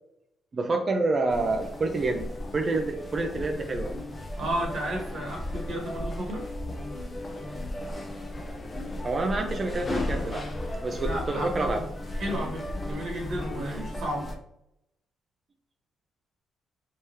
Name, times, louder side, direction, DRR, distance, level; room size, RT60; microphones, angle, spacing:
voice 1, 0.5-2.2 2.5-3.9 9.0-10.5 10.8-11.8 13.7-13.8, right 3 dB, 35° right, 4 dB, 0.4 m, -28 dB
sound 1, 1.3-14.4, left 1 dB, 25° left, 0.6 m, -35 dB
voice 2, 4.4-6.4 11.0-11.8 12.2-14.3, right 1 dB, 70° right, -2 dB, 1.2 m, -33 dB
3.4 x 3.1 x 2.9 m, 0.77 s
cardioid pair, 90°, 0 cm